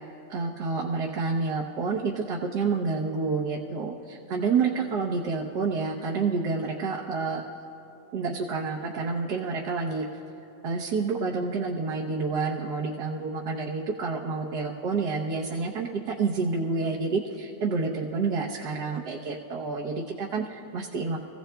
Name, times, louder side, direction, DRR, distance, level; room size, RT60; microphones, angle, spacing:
voice 1, 0.3-7.6 8.1-10.0 10.6-21.2, right 4 dB, 65° right, -3 dB, 1.4 m, -29 dB
25.0 x 16.0 x 2.3 m, 2.8 s
omnidirectional pair, 2.0 m